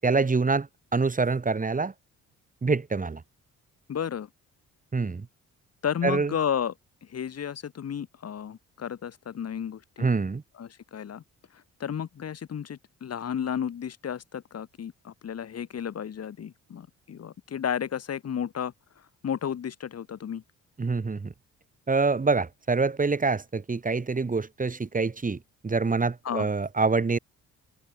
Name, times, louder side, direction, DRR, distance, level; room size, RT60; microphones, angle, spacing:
voice 1, 0.0-1.9 2.6-3.2 4.9-5.3 6.0-6.3 10.0-10.4 20.8-21.3 21.9-27.2, right 4 dB, 25° right, 4.0 m, -26 dB
voice 2, 3.9-4.3 5.8-6.7 7.1-10.1 10.5-11.2 11.8-18.7 19.2-20.4 26.2-26.5, left 8 dB, 55° left, 5.1 m, -32 dB
cardioid pair, 90°, 30 cm